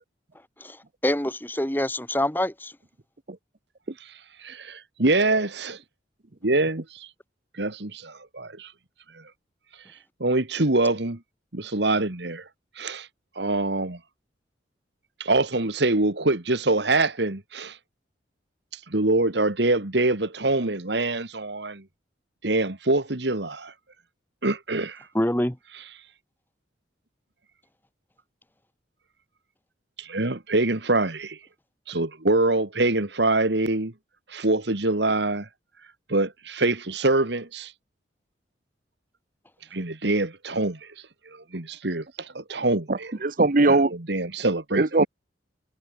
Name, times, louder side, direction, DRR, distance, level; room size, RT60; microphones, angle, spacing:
voice 1, 1.0-2.7 25.1-25.6, left 1 dB, 10° left, 2.4 m, -25 dB
voice 2, 4.4-5.8 6.4-7.1 7.6-8.7 9.1-9.2 10.2-11.2 11.5-12.5 12.8-13.1 13.4-14.0 15.2-17.8 18.9-21.8 22.4-23.7 24.4-25.1 30.0-31.4 31.9-33.9 34.3-35.5 36.1-37.7 39.7-40.9 41.3-43.1 43.6-45.1, right 2 dB, 65° right, 1.9 m, -25 dB
voice 3, 42.9-43.9 44.7-45.0, right 2 dB, 50° right, 1.0 m, -20 dB
head